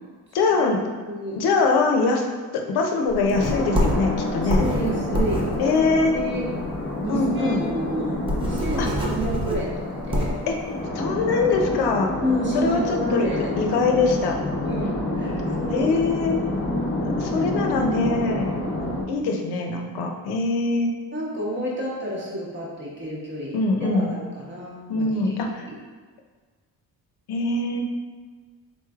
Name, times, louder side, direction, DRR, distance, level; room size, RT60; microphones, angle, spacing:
voice 1, 0.3-0.8 1.4-2.2 2.5-4.7 5.6-6.1 7.1-7.6 8.8-8.9 10.5-10.6 10.9-12.1 12.5-13.3 13.6-14.4 15.7-16.3 17.2-18.5 19.1-20.9 23.5-24.1 24.9-25.7 27.3-27.8, left 3 dB, 85° left, 2 dB, 0.6 m, -23 dB
voice 2, 1.0-1.4 4.6-5.8 6.1-6.4 7.0-10.4 12.2-13.5 14.6-15.9 18.8-19.3 21.1-25.8, right 1 dB, 30° right, -5 dB, 0.9 m, -30 dB
sound 1, 3.1-6.8 7.1-7.2 7.5-7.6 7.9-10.5, equal, 15° right, 0.5 m, -26 dB
sound 2, 3.3-19.0, left 1 dB, 30° left, 0.6 m, -28 dB
3.9 x 3.1 x 2.3 m, 1.5 s
cardioid pair, 125°, 38 cm